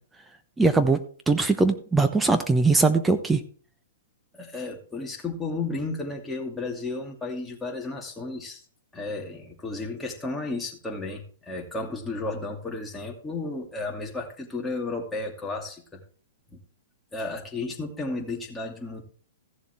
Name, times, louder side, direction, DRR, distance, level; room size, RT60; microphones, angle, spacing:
voice 1, 0.6-3.4, right 3 dB, 10° right, 9 dB, 1.0 m, -21 dB
voice 2, 4.3-8.6 8.9-16.0 16.5-16.6 17.1-19.0, left 3 dB, 10° left, -1 dB, 2.6 m, -33 dB
15.0 x 7.1 x 3.5 m, 0.44 s
hypercardioid pair, 125°, 0 cm